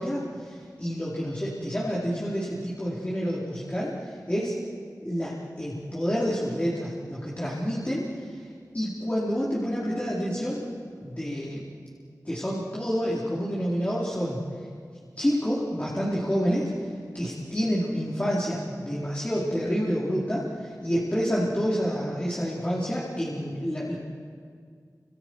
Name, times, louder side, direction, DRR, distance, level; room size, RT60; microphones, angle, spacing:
voice 1, 0.0-4.5 5.0-8.3 8.7-10.6 11.0-11.7 12.2-14.4 15.2-24.0, equal, 20° left, -7 dB, 4.3 m, -28 dB
30.0 x 27.0 x 4.8 m, 2.1 s
wide cardioid pair, 60°, 7 cm